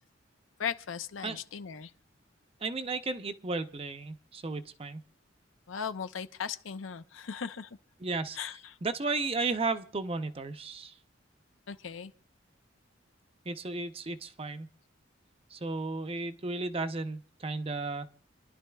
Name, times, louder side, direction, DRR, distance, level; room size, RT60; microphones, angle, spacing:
voice 1, 0.6-1.9 5.7-7.8 8.4-8.8 11.7-12.1, left 7 dB, 85° left, 0.6 m, -37 dB
voice 2, 2.6-5.0 8.0-8.4 8.8-10.9 13.5-14.7 15.5-18.1, right 3 dB, 30° right, 0.6 m, -34 dB
28.0 x 11.0 x 2.3 m
head